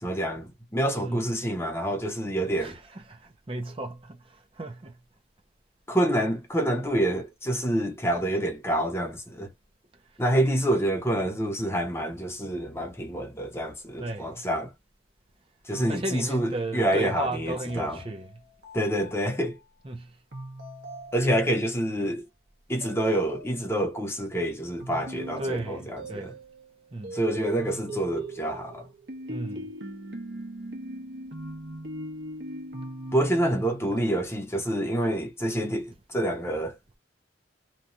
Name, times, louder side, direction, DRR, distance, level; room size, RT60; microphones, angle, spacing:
voice 1, 0.0-2.8 5.9-9.5 10.2-14.7 15.7-18.0 18.7-19.6 21.1-22.2 22.7-26.3 27.1-28.9 33.1-36.8, right 1 dB, 15° left, 0.8 m, -27 dB
voice 2, 2.6-4.9 14.0-14.4 15.9-18.3 19.8-20.1 25.4-26.3 26.9-27.1 29.3-29.7, right 2 dB, 30° right, 0.6 m, -34 dB
sound 1, 15.7-19.6 20.3-21.8 22.8-24.0 24.8-26.7 27.0-34.0, right 1 dB, 75° right, 1.2 m, -40 dB
3.0 x 2.3 x 2.5 m
head